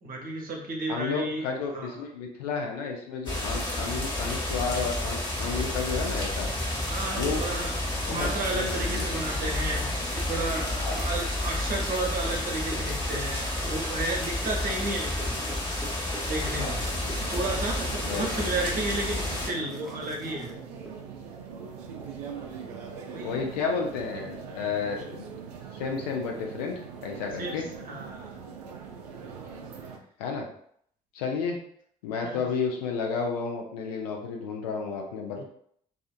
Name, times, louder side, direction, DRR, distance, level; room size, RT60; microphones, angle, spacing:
voice 1, 0.0-1.5 1.7-2.0 6.9-7.7 8.1-15.4 16.2-16.8 17.3-20.6 22.6-23.5 27.4-27.6 27.8-28.4 29.2-29.3 32.2-32.4 35.4-35.5, right 2 dB, 45° right, 0 dB, 0.8 m, -33 dB
voice 2, 0.9-6.5 7.2-7.4 8.1-9.1 10.8-11.0 16.6-16.7 18.0-18.5 23.2-25.3 25.8-27.7 30.2-30.5 31.1-31.6 32.0-35.4, left 5 dB, 80° left, 1 dB, 0.5 m, -32 dB
sound 1, 3.3-19.5, left 1 dB, 25° left, 1.1 m, -30 dB
sound 2, 4.7-20.9, right 1 dB, ahead, 0.7 m, -46 dB
sound 3, 16.5-30.0, right 6 dB, 80° right, 0.4 m, -41 dB
2.4 x 2.4 x 2.4 m, 0.64 s
figure-of-eight pair, 45°, 20 cm